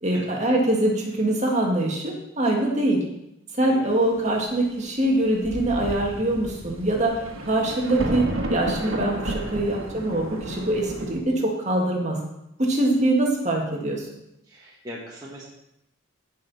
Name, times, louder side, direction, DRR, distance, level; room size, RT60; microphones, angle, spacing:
voice 1, 0.0-3.0 3.5-12.2 12.6-14.1, right 1 dB, 35° right, -1 dB, 1.8 m, -23 dB
Thunder, 5.0-5.1 5.4-11.2, right 1 dB, 80° right, 1.5 m, -31 dB
voice 2, 14.5-15.5, equal, 20° right, -5 dB, 1.4 m, -40 dB
15.5 x 5.6 x 4.1 m, 0.84 s
head